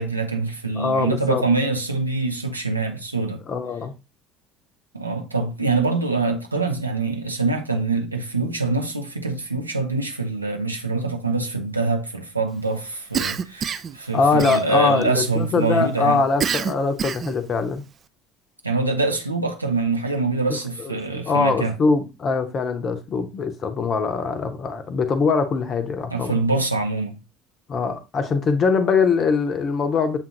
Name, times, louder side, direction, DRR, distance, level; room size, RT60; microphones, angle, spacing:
voice 1, 0.0-3.4 4.9-16.2 18.6-21.7 26.1-27.2, right 3 dB, 85° right, 0.5 m, -24 dB
voice 2, 0.8-1.4 3.5-3.9 14.1-17.8 21.3-26.4 27.7-30.2, left 4 dB, 40° left, 0.7 m, -22 dB
Cough, 13.1-14.0 14.4-15.0 16.4-17.4, right 7 dB, 35° right, 0.3 m, -26 dB
7.2 x 2.5 x 2.9 m
figure-of-eight pair, 60°, 0 cm